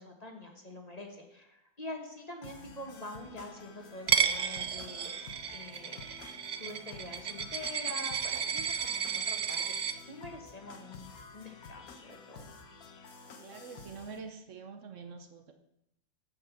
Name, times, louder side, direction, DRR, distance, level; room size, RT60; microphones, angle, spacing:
voice 1, 0.0-5.2 5.5-6.0 6.4-12.5, left 2 dB, 30° left, 3 dB, 1.2 m, -46 dB
sound 1, 2.4-14.2, left 4 dB, 85° left, 1.5 m, -51 dB
Coin (dropping), 4.1-9.9, right 7 dB, 85° right, 0.3 m, -32 dB
voice 2, 13.4-15.5, right 5 dB, 65° right, 6 dB, 1.1 m, -46 dB
9.6 x 5.4 x 7.0 m, 0.84 s
omnidirectional pair, 1.5 m